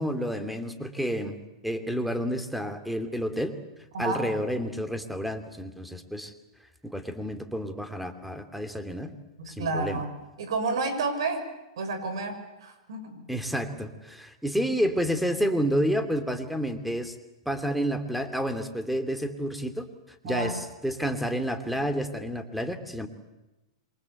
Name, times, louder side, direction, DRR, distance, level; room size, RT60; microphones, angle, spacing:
voice 1, 0.0-1.4 1.6-3.5 4.0-6.3 6.8-9.1 9.5-10.0 13.3-17.1 17.4-19.9 20.2-23.1, equal, ahead, 8 dB, 2.9 m, -30 dB
voice 2, 3.9-4.3 9.4-10.1 10.4-11.4 11.8-13.2 20.2-20.6, right 3 dB, 75° right, 9 dB, 6.1 m, -30 dB
27.5 x 24.0 x 8.4 m, 1.0 s
hypercardioid pair, 120°, 3 cm